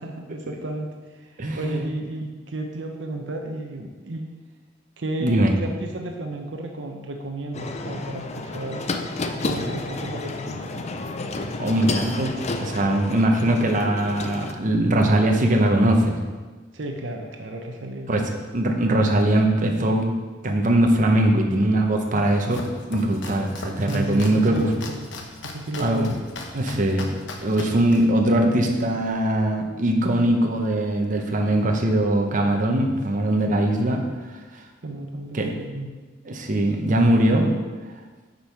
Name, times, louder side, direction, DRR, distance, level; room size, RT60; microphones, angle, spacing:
voice 1, 0.0-4.4 5.0-9.0 9.3-10.9 16.7-18.3 23.8-25.1 25.4-26.2 34.8-35.9, right 2 dB, 75° right, 3 dB, 0.7 m, -33 dB
voice 2, 1.4-1.8 5.2-5.5 11.6-16.2 18.1-18.2 18.5-20.1 20.4-22.6 22.9-24.7 25.8-26.1 26.5-27.1 27.4-34.1 34.5-34.6 35.3-35.5 36.3-37.5, right 1 dB, 45° right, 2 dB, 0.9 m, -21 dB
sound 1, 7.5-14.5, left 3 dB, 35° left, 0.5 m, -31 dB
Domestic sounds home sounds, 22.1-29.1, left 2 dB, 75° left, 1.0 m, -39 dB
8.6 x 5.4 x 4.6 m, 1.3 s
head